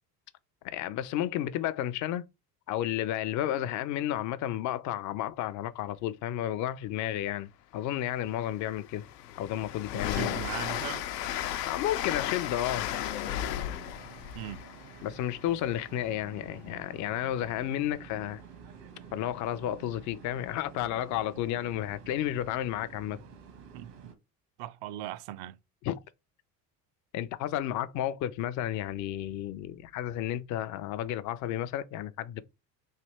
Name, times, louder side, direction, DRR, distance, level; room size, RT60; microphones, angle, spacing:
voice 1, 0.6-2.3 2.7-9.1 9.4-10.3 11.6-12.9 15.0-18.4 19.1-23.2 25.8-25.9 27.1-32.4, left 12 dB, 40° left, 0.5 m, -32 dB
Train, 7.9-8.0 8.4-16.1, left 11 dB, 75° left, 0.7 m, -35 dB
voice 2, 9.9-11.0 14.3-14.6 23.7-24.1 24.6-25.6, right 13 dB, 50° right, 0.5 m, -39 dB
sound 1, 13.2-24.1, right 6 dB, 70° right, 1.3 m, -50 dB
3.3 x 2.8 x 4.1 m
hypercardioid pair, 65°, 50 cm